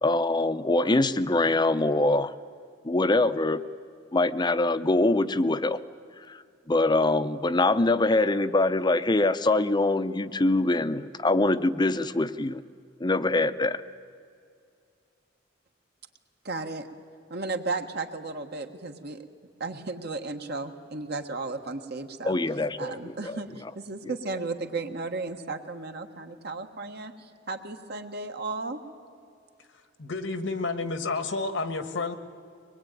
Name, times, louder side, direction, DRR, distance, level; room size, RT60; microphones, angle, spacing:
voice 1, 0.0-2.3 2.8-3.6 4.1-5.8 6.3-6.4 6.7-12.6 13.0-13.8 22.2-23.4, left 2 dB, 25° left, 13 dB, 0.6 m, -24 dB
voice 2, 16.4-16.9 17.3-19.2 19.6-22.4 22.8-28.8, right 3 dB, 60° right, 6 dB, 1.5 m, -34 dB
voice 3, 30.0-32.1, left 3 dB, 80° left, 10 dB, 1.5 m, -30 dB
24.0 x 20.5 x 9.1 m, 2.3 s
head